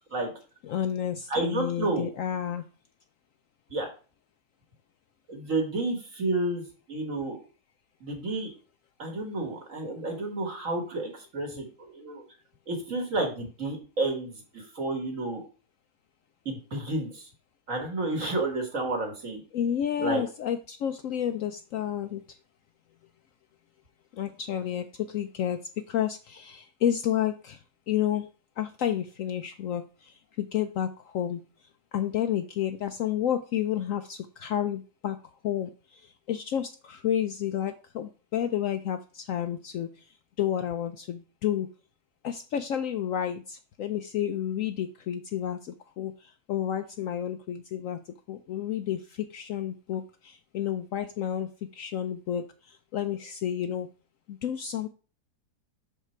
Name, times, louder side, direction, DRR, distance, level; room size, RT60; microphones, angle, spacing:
voice 1, 0.6-2.6 19.5-22.2 24.1-25.6 25.9-27.6 27.9-28.3 28.6-31.4 31.9-35.2 35.4-39.9 40.4-41.7 42.2-46.1 46.5-48.0 48.3-53.9 54.3-54.9, left 10 dB, 70° left, 9 dB, 0.8 m, -30 dB
voice 2, 1.3-2.1 3.7-3.9 5.3-7.4 8.0-8.5 9.0-12.2 12.7-15.4 16.5-17.3 17.7-19.4 20.0-20.2, right 2 dB, 50° right, 2 dB, 2.1 m, -31 dB
6.5 x 5.0 x 4.4 m, 0.36 s
omnidirectional pair, 1.7 m